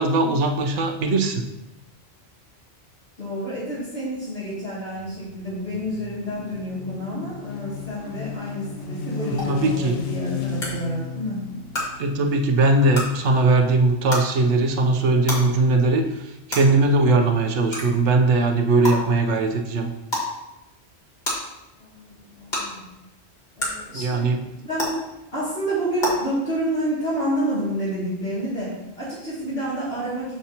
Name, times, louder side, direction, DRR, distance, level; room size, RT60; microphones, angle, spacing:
voice 1, 0.0-1.4 9.3-9.9 12.0-16.1 16.5-19.9 23.9-24.4, right 2 dB, 80° right, 4 dB, 1.1 m, -20 dB
voice 2, 3.2-11.5 21.8-22.9 23.6-24.9 25.3-30.4, equal, 60° left, -11 dB, 2.6 m, -29 dB
sound 1, 5.0-12.6, left 5 dB, 75° left, 1.1 m, -34 dB
sound 2, 9.4-9.5 10.6-10.7 11.7-11.8 12.9-13.0 14.1-14.2 15.3-15.4 16.5-16.6 17.7-17.8 18.8-18.9 20.1-20.3 21.2-21.3 22.5-22.6 23.6-23.7 24.8-24.9 26.0-26.1, left 1 dB, 40° left, 2.1 m, -25 dB
7.5 x 6.9 x 2.9 m, 0.92 s
omnidirectional pair, 1.2 m